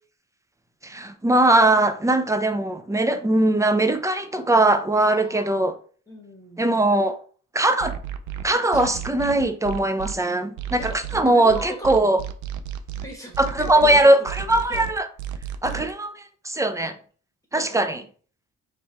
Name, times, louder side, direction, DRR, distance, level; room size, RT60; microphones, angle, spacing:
voice 1, 0.8-5.7 6.6-7.2 7.5-8.0 8.4-12.2 13.4-14.2 14.5-15.1 15.6-16.1 16.4-17.0 17.5-18.0, right 1 dB, 10° right, 0.5 m, -20 dB
voice 2, 5.0-5.7 6.1-6.8 8.7-9.0 10.8-12.1 13.0-14.9 15.7-15.9 17.6-17.8, equal, 10° left, 1.7 m, -40 dB
sound 1, 7.8-10.1 10.6-15.9, right 11 dB, 70° right, 0.6 m, -33 dB
3.3 x 3.1 x 4.2 m
cardioid pair, 90°, 30 cm